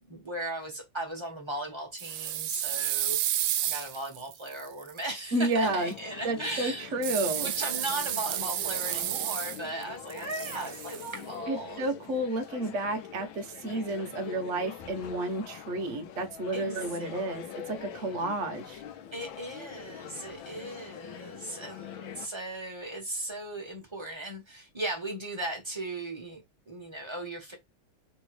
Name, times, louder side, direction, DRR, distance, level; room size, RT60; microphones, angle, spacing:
voice 1, 0.1-6.9 7.4-11.9 12.5-12.6 13.7-13.9 16.5-17.1 17.4-18.1 19.1-27.6, right 1 dB, 20° right, 0.8 m, -37 dB
sound 1, 2.0-5.0 7.0-9.8 10.1-11.2, right 12 dB, 90° right, 1.5 m, -31 dB
voice 2, 5.3-5.9 6.2-7.5 11.5-18.8, right 1 dB, 55° right, 0.8 m, -31 dB
sound 2, 5.5-22.3, left 9 dB, 70° left, 1.4 m, -45 dB
3.4 x 3.1 x 4.7 m
omnidirectional pair, 2.3 m